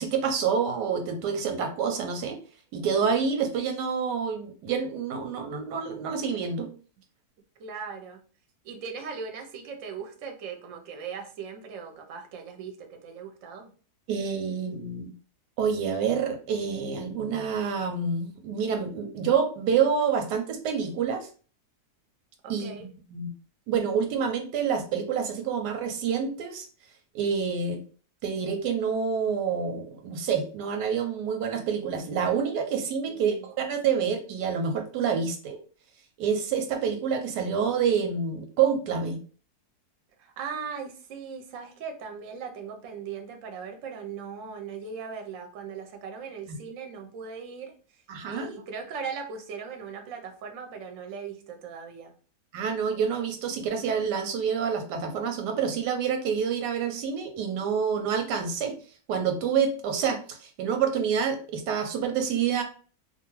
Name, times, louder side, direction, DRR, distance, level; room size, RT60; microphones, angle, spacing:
voice 1, 0.0-2.4 2.7-6.7 14.1-15.1 15.6-21.3 22.5-22.7 23.1-23.3 23.7-26.6 27.1-27.8 28.2-35.6 36.2-39.2 48.1-48.6 52.5-58.8 59.1-62.6, right 6 dB, 90° right, 5 dB, 1.2 m, -27 dB
voice 2, 7.6-8.2 8.6-13.7 22.4-22.9 33.1-33.5 40.2-47.7 48.3-52.1, right 6 dB, 65° right, 4 dB, 0.9 m, -39 dB
2.6 x 2.5 x 3.0 m, 0.39 s
omnidirectional pair, 1.8 m